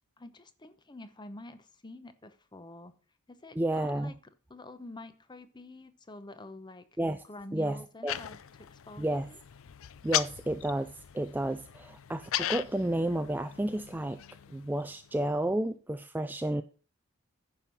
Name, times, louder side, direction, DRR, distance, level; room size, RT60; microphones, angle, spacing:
voice 1, 0.2-3.0 3.3-4.2 4.5-6.9 7.2-9.4, left 2 dB, 20° left, 11 dB, 0.8 m, -47 dB
voice 2, 3.6-4.1 7.0-7.2 7.5-8.2 9.0-9.3 10.0-14.2 14.5-16.6, right 1 dB, 10° right, 10 dB, 0.3 m, -31 dB
sound 1, 8.1-15.3, left 12 dB, 65° left, 0.5 m, -38 dB
10.0 x 5.4 x 6.0 m, 0.38 s
head